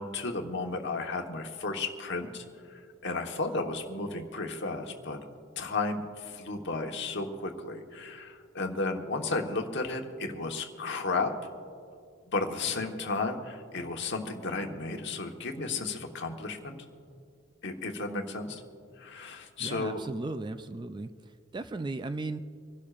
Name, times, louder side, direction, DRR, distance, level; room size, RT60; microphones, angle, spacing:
voice 1, 0.0-2.4 2.7-5.2 5.6-11.3 12.3-16.8 17.6-18.6 19.0-20.0, left 3 dB, 60° left, 3 dB, 1.2 m, -33 dB
voice 2, 19.6-21.1 21.5-22.4, right 2 dB, 20° right, 11 dB, 0.3 m, -36 dB
26.0 x 11.5 x 2.5 m, 2.3 s
head